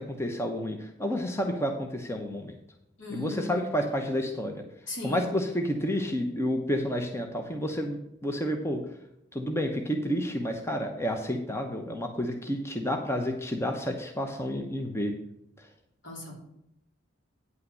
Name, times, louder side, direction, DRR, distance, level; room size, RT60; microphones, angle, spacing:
voice 1, 0.0-2.5 3.1-4.6 5.0-8.8 9.3-15.1, equal, 15° left, 4 dB, 0.9 m, -30 dB
voice 2, 3.0-3.8 4.9-5.3 16.0-16.3, left 2 dB, 70° left, -1 dB, 3.6 m, -38 dB
9.5 x 5.7 x 6.3 m, 0.82 s
head